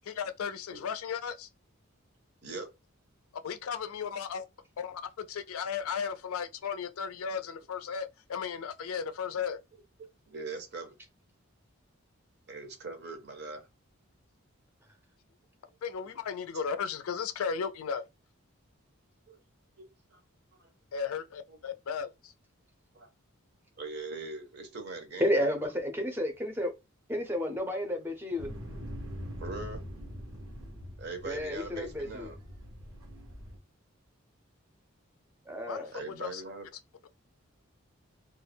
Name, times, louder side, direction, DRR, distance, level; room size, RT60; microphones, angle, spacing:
voice 1, 0.1-1.5 3.4-4.5 4.8-9.6 15.8-18.0 20.9-22.3 35.7-35.9 36.2-36.4, left 6 dB, 85° left, 0.4 m, -35 dB
voice 2, 10.3-10.9 12.5-13.7 19.3-19.4 19.8-20.2 20.6-20.7 21.5-21.6 22.9-23.1 23.8-25.7 29.4-29.8 31.0-32.4 35.9-36.7, right 3 dB, 50° right, 0.6 m, -41 dB
voice 3, 25.2-26.7 27.1-28.5 31.2-32.4 35.5-35.9, equal, 10° right, 0.5 m, -31 dB
sound 1, 28.4-33.6, equal, 85° right, 0.9 m, -43 dB
2.3 x 2.1 x 3.2 m
head